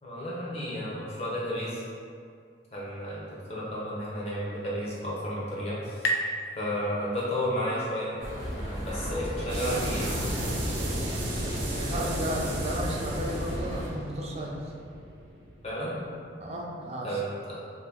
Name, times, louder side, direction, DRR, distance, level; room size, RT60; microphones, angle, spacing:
voice 1, 0.0-1.8 2.7-6.0 6.5-8.2 8.8-10.1 15.6-16.0 17.0-17.6, equal, 35° left, -7 dB, 0.8 m, -32 dB
sound 1, 4.6-7.9, equal, 85° left, 0.3 m, -35 dB
sound 2, 8.2-13.9, equal, 50° left, 1.4 m, -34 dB
sound 3, 9.5-16.0, right 1 dB, 80° right, 0.6 m, -34 dB
voice 2, 11.7-14.7 16.4-17.2, right 1 dB, 35° right, -2 dB, 0.4 m, -34 dB
2.7 x 2.6 x 3.5 m, 2.3 s
head